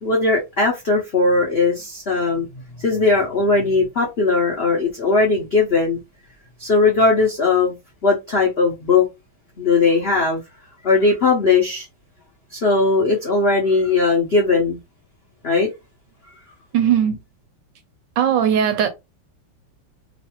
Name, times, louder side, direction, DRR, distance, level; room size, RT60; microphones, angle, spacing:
voice 1, 0.0-2.5 2.8-6.0 6.6-9.1 9.6-10.4 10.8-11.9 12.5-14.8 15.4-15.7, left 3 dB, 75° left, 0.5 m, -18 dB
voice 2, 16.7-17.2 18.2-18.9, right 9 dB, 75° right, 1.1 m, -18 dB
3.1 x 2.5 x 2.8 m
omnidirectional pair, 2.2 m